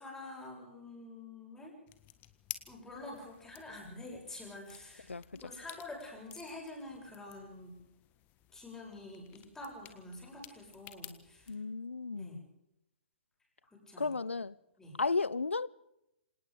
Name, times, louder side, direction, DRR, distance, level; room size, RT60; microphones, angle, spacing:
voice 1, 0.0-1.7 2.7-5.1 5.4-7.8 8.5-11.5 12.1-12.4 13.7-14.2 14.8-15.0, left 2 dB, 10° left, 7.6 m, -47 dB
sound 1, 1.9-11.6, left 14 dB, 25° left, 1.6 m, -53 dB
voice 2, 5.1-5.4 11.5-12.4 14.0-14.5 15.0-15.7, left 4 dB, 80° left, 0.7 m, -34 dB
26.5 x 18.5 x 5.3 m
figure-of-eight pair, 120°, 7 cm